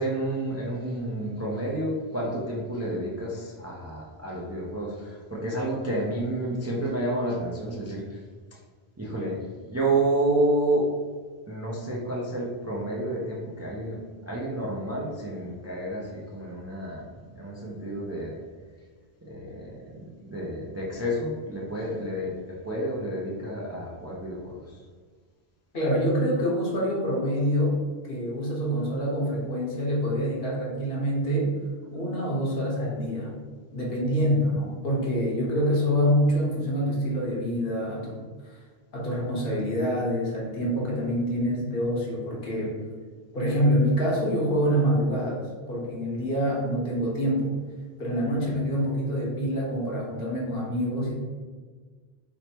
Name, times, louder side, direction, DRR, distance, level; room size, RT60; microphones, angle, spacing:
voice 1, 0.0-8.2 8.5-8.6 9.0-10.9 11.5-14.0 14.2-18.4 19.3-22.3 22.6-24.8 48.4-48.6, right 1 dB, 25° right, -5 dB, 0.3 m, -30 dB
voice 2, 25.7-27.8 28.1-31.5 31.9-33.3 33.7-38.2 38.9-42.7 43.3-45.4 45.7-47.5 48.0-51.1, equal, 65° left, -4 dB, 1.2 m, -26 dB
3.1 x 2.1 x 4.2 m, 1.5 s
omnidirectional pair, 1.1 m